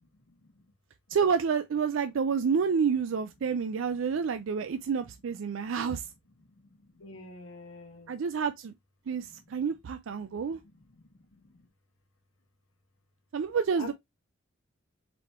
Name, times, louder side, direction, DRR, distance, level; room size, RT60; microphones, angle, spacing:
voice 1, 1.1-6.1 8.1-8.7 9.1-10.6 13.3-13.9, right 6 dB, 70° right, 0.4 m, -29 dB
voice 2, 7.0-8.1 13.8-13.9, left 3 dB, 80° left, 1.0 m, -44 dB
4.3 x 4.2 x 2.9 m
head